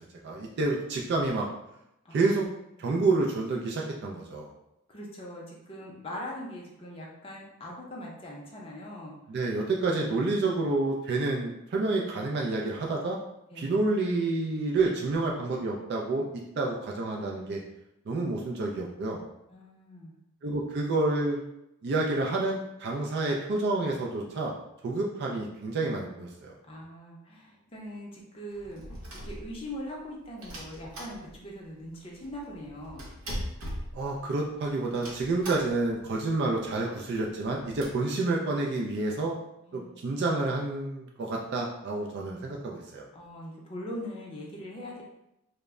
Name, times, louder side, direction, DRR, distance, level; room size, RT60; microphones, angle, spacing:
voice 1, 0.2-1.5 2.1-2.5 2.8-4.5 9.3-13.2 13.6-17.6 18.1-19.2 20.4-21.4 21.8-24.5 24.8-26.5 33.9-39.4 39.7-43.0, right 2 dB, 50° right, -1 dB, 0.3 m, -29 dB
voice 2, 2.0-2.5 2.8-3.0 4.9-9.2 13.5-13.7 19.5-20.2 26.7-33.1 39.7-40.0 43.1-45.0, equal, 25° left, -3 dB, 0.5 m, -41 dB
sound 1, 28.5-29.9 30.4-31.7 31.9-32.0 32.2-34.5 34.9-36.0 36.3-36.4 36.6-36.8 37.3-37.9, equal, 70° right, 0.7 m, -40 dB
2.1 x 2.0 x 3.5 m, 0.85 s
head